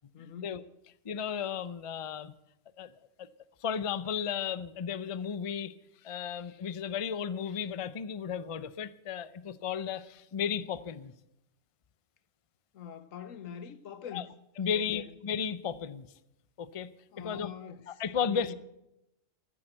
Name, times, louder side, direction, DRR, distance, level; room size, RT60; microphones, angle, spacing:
voice 1, 0.1-0.6 12.7-14.3 14.7-15.2 17.1-18.5, left 8 dB, 85° left, 1.3 m, -44 dB
voice 2, 1.0-2.3 2.8-2.9 3.2-3.3 3.6-5.7 6.0-11.1 14.1-14.2 14.6-16.1 16.6-16.9 17.2-17.5 17.9-18.5, left 7 dB, 35° left, 0.5 m, -34 dB
15.0 x 9.9 x 7.9 m
omnidirectional pair, 1.3 m